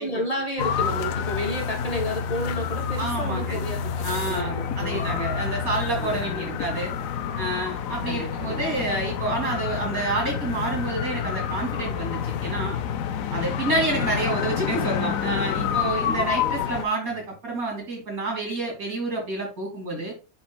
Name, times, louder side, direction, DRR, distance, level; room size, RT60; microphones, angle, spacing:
voice 1, 0.0-5.3 5.9-6.6 8.0-8.8 16.0-16.7, equal, 30° left, 1 dB, 1.3 m, -32 dB
sound 1, 0.6-16.9, left 7 dB, 75° left, 1.0 m, -28 dB
voice 2, 3.0-3.6 4.0-6.9 7.4-12.8 13.3-20.1, right 2 dB, 85° right, 0 dB, 3.0 m, -29 dB
10.5 x 4.1 x 2.2 m, 0.30 s
omnidirectional pair, 1.5 m